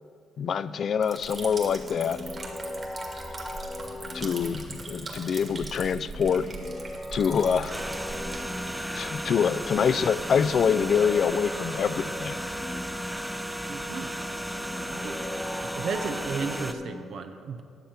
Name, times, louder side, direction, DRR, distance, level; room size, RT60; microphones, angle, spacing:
voice 1, 0.4-2.2 4.1-6.5 7.1-7.7 8.9-12.3, left 7 dB, 55° left, 15 dB, 0.3 m, -25 dB
Liquid, 1.0-13.5, right 3 dB, 40° right, 1.9 m, -42 dB
sound 1, 1.3-17.1, left 1 dB, 20° left, 0.9 m, -40 dB
sound 2, 7.7-16.7, equal, ahead, 0.5 m, -34 dB
voice 2, 13.7-14.1 14.9-15.2 15.5-17.6, right 5 dB, 65° right, 6 dB, 0.7 m, -34 dB
10.5 x 7.2 x 5.7 m, 2.2 s
cardioid pair, 90°, 0 cm